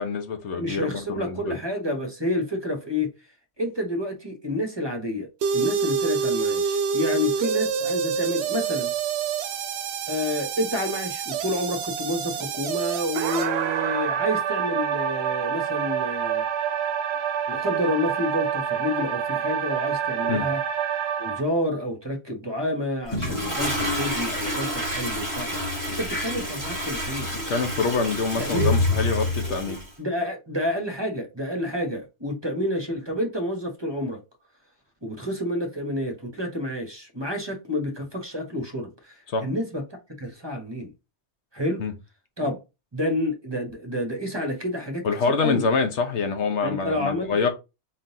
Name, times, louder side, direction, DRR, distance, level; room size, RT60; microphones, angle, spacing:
voice 1, 0.0-1.6 20.3-20.5 27.5-29.8 39.3-39.5 41.8-41.9 45.0-47.5, left 4 dB, 75° left, 1.2 m, -25 dB
voice 2, 0.5-3.1 3.6-8.9 10.1-16.4 17.5-20.6 21.2-25.5 26.0-27.3 28.4-28.7 29.2-34.2 35.0-39.8 40.2-40.9 41.5-41.8 42.4-42.6 42.9-45.1 45.4-45.6 46.6-47.5, left 1 dB, 25° right, 1.1 m, -29 dB
sound 1, 5.4-21.4, right 7 dB, 70° right, 0.8 m, -27 dB
Toilet flush, 23.1-29.9, left 1 dB, 15° left, 2.2 m, -28 dB
4.2 x 3.8 x 2.7 m
omnidirectional pair, 1.2 m